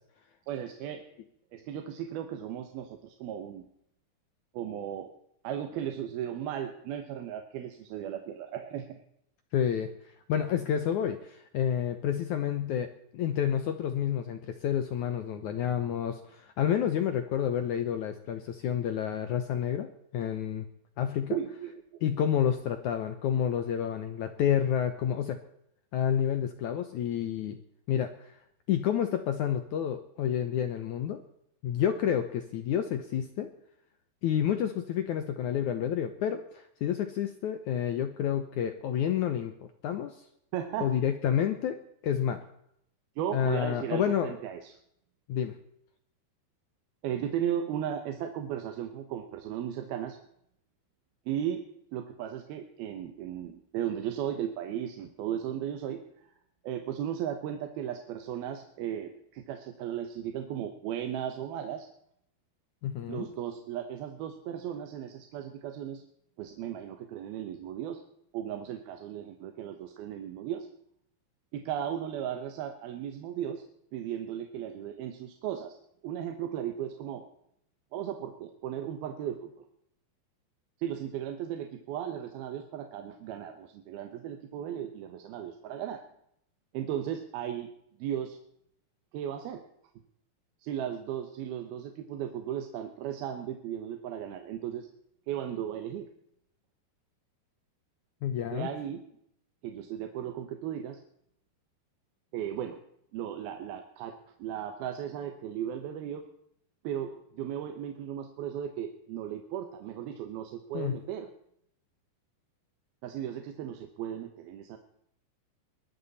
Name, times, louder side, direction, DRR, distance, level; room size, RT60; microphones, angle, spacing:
voice 1, 0.5-1.0 1.5-3.7 4.5-5.1 5.4-8.9 21.3-21.7 40.5-40.9 43.2-44.7 47.0-50.2 51.3-51.6 51.9-56.0 56.6-61.9 63.1-66.0 66.4-68.0 68.3-70.7 71.5-73.6 73.9-75.8 76.0-77.2 77.9-79.6 80.8-86.0 86.7-87.7 88.0-88.4 89.1-89.6 90.6-94.9 95.3-96.1 98.5-99.0 99.6-101.0 102.3-102.8 103.1-106.2 106.8-111.3 113.0-114.8, right 10 dB, 70° right, 6 dB, 2.9 m, -36 dB
voice 2, 9.5-9.9 10.3-20.7 21.0-21.4 22.0-25.4 25.9-27.6 27.9-28.4 28.7-31.2 31.6-33.5 34.2-40.2 40.8-41.8 42.0-42.4 43.3-44.3 45.3-45.5 62.8-63.3 98.2-98.7 110.7-111.0, left 9 dB, 80° left, 8 dB, 1.7 m, -29 dB
22.5 x 12.5 x 4.2 m, 0.72 s
omnidirectional pair, 4.7 m